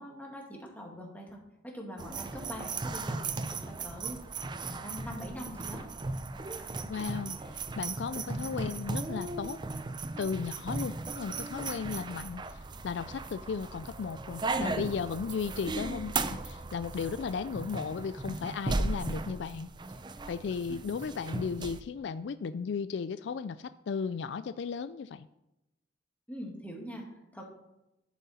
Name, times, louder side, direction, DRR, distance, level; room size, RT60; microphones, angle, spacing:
voice 1, 0.0-1.4 1.6-4.2 4.6-5.9 8.3-8.4 15.7-15.9 26.3-27.0 27.3-27.4, equal, 10° left, -1 dB, 2.0 m, -43 dB
sound 1, 2.0-21.8, right 3 dB, 25° right, 0.5 m, -37 dB
voice 2, 6.9-9.6 10.2-12.4 12.8-19.7 20.3-25.3, left 5 dB, 70° left, 13 dB, 0.3 m, -35 dB
10.5 x 7.4 x 4.2 m, 0.92 s
head